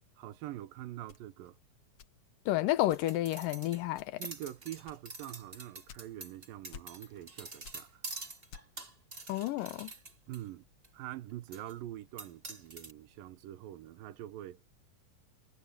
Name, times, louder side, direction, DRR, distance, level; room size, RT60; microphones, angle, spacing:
voice 1, 0.2-1.6 4.2-8.0 10.3-10.7 10.9-14.6, right 14 dB, 80° right, 2.7 m, -45 dB
sound 1, 1.1-2.5 2.9-3.3 3.9-4.4 4.9-6.4 6.7-7.3 7.6-8.9, left 8 dB, 60° left, 1.7 m, -53 dB
voice 2, 2.5-4.2 9.3-9.9, left 15 dB, 75° left, 2.5 m, -31 dB
sound 2, 2.8-10.4 10.8-10.9 11.5-11.7 12.2-12.9, right 2 dB, 20° right, 2.2 m, -46 dB
omnidirectional pair, 4.0 m